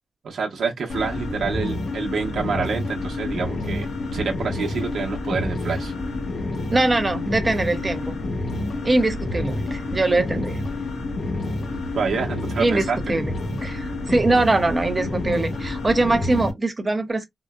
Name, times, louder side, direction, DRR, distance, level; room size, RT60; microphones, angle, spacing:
voice 1, 0.2-5.9 11.9-13.0, right 5 dB, 85° right, 0.8 m, -27 dB
sound 1, 0.9-16.5, left 2 dB, 75° left, 1.0 m, -28 dB
voice 2, 6.7-8.2 8.8-10.6 12.6-13.3 13.6-17.3, right 2 dB, 25° right, 0.7 m, -22 dB
3.8 x 2.0 x 2.3 m
wide cardioid pair, 130°, 0 cm